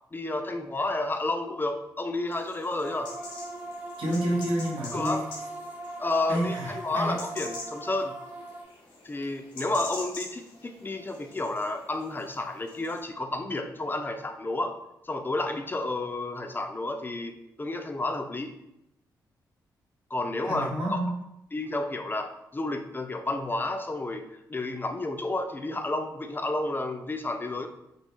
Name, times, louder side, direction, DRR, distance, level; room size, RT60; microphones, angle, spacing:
voice 1, 0.1-3.1 4.9-5.3 6.0-8.2 9.0-14.8 15.0-18.5 20.1-20.7 21.5-24.2 24.5-27.7, left 2 dB, 25° left, 6 dB, 0.3 m, -31 dB
sound 1, 2.3-13.0, left 3 dB, 80° left, 0.6 m, -45 dB
sound 2, 2.8-8.6, right 2 dB, 15° right, 0.6 m, -40 dB
voice 2, 4.0-5.2 6.3-7.2 20.4-21.1, right 1 dB, 75° right, -4 dB, 0.8 m, -29 dB
2.3 x 2.2 x 2.8 m, 0.84 s
supercardioid pair, 45°, 9 cm